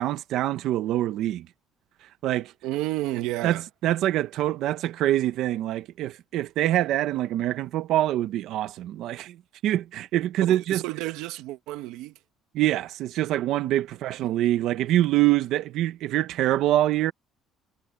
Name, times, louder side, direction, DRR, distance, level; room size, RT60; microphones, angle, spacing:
voice 1, 0.0-1.5 2.2-2.5 3.4-9.4 9.6-10.8 12.5-17.1, right 13 dB, 60° right, 0.8 m, -25 dB
voice 2, 2.6-3.6 10.4-12.2, right 17 dB, 90° right, 0.9 m, -31 dB
cardioid pair, 175°, 0 cm